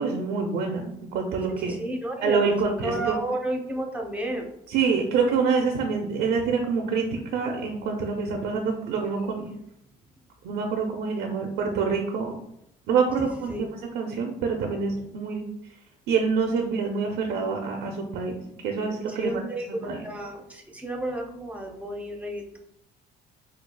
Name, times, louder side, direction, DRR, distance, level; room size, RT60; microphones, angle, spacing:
voice 1, 0.0-1.8 2.2-3.2 4.7-9.4 10.4-12.3 12.9-13.7 13.9-15.4 16.1-18.3 18.6-19.3 19.8-20.0, right 5 dB, 85° right, 2 dB, 0.5 m, -26 dB
voice 2, 1.6-4.5 13.2-13.7 19.2-22.6, right 1 dB, 10° right, 2 dB, 0.6 m, -32 dB
4.5 x 2.3 x 2.2 m, 0.81 s
cardioid pair, 110°, 17 cm